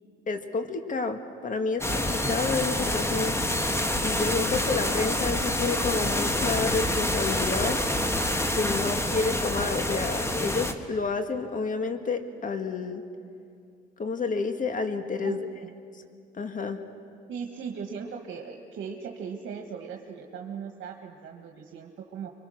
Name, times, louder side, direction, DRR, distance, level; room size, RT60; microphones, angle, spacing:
voice 1, 0.3-3.4 4.0-7.8 8.5-13.0 14.0-15.5 16.3-16.8, left 4 dB, 40° left, 7 dB, 1.9 m, -29 dB
sound 1, 1.8-10.7, left 1 dB, 15° left, 1.5 m, -27 dB
voice 2, 15.2-15.7 17.3-22.3, right 6 dB, 75° right, 2 dB, 1.6 m, -38 dB
26.0 x 23.0 x 6.5 m, 2.4 s
cardioid pair, 90°, 20 cm